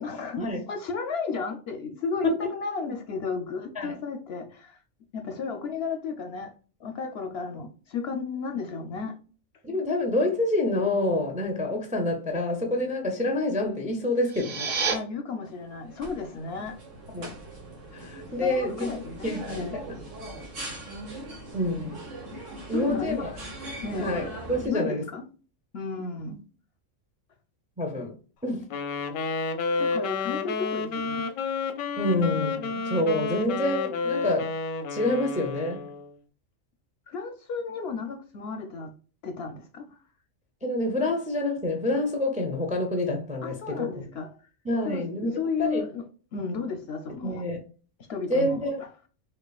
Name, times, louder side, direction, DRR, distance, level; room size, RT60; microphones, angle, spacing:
voice 1, 0.0-4.8 5.1-6.5 6.8-9.2 14.9-16.8 18.4-19.8 22.7-23.3 23.8-24.2 24.6-25.2 25.7-26.4 29.8-31.3 37.1-38.9 39.2-39.9 43.4-44.3 44.8-46.0 46.3-47.4 48.1-48.6, left 4 dB, 65° left, 0.7 m, -33 dB
voice 2, 9.6-14.8 17.1-17.4 17.9-18.9 19.2-19.8 21.5-22.0 22.7-23.3 23.9-25.0 27.8-28.1 28.4-28.7 32.0-34.5 34.9-35.9 40.6-44.1 44.6-45.3 45.6-45.8 47.2-47.6 48.3-48.8, left 1 dB, 10° right, 0.4 m, -27 dB
sound 1, 14.1-14.9, right 5 dB, 45° right, 0.7 m, -29 dB
sound 2, 15.5-24.7, right 2 dB, 70° right, 1.6 m, -40 dB
Wind instrument woodwind instrument, 28.7-36.1, left 4 dB, 90° left, 1.0 m, -30 dB
5.4 x 2.4 x 2.3 m
omnidirectional pair, 1.3 m